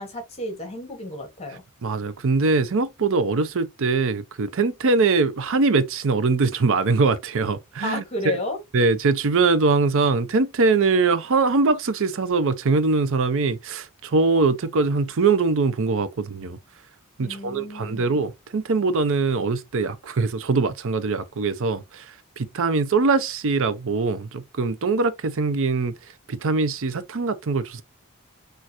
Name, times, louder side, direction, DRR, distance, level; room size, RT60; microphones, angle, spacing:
voice 1, 0.0-1.6 7.8-8.6 17.2-18.1, left 1 dB, 30° left, 1.7 m, -32 dB
voice 2, 1.8-8.0 8.7-16.6 17.2-27.8, right 4 dB, 65° right, 0.6 m, -22 dB
6.4 x 2.5 x 2.9 m
head